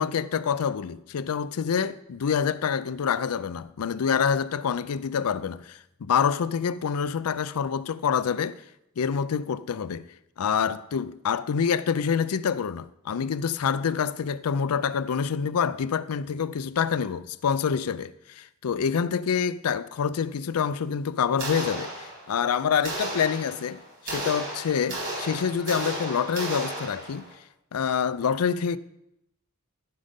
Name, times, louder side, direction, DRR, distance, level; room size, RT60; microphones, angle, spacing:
voice 1, 0.0-8.6 9.0-10.1 10.4-23.8 24.0-27.3 27.7-28.8, left 7 dB, 80° left, 0.4 m, -27 dB
sound 1, 21.4-22.4 22.8-27.3, right 1 dB, 55° right, 3.7 m, -34 dB
14.0 x 5.2 x 5.2 m
head